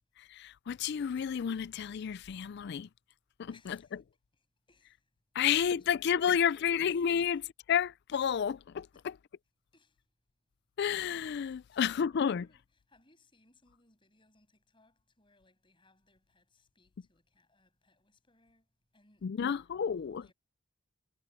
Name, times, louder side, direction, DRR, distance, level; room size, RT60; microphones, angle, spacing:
voice 1, 0.3-2.9 3.4-4.0 5.4-9.2 10.8-12.5 19.2-20.2, left 8 dB, 50° left, 0.3 m, -31 dB
voice 2, 3.5-4.0 4.3-7.5 8.9-9.1 9.7-10.2 11.7-20.3, left 3 dB, 25° left, 7.3 m, -68 dB
head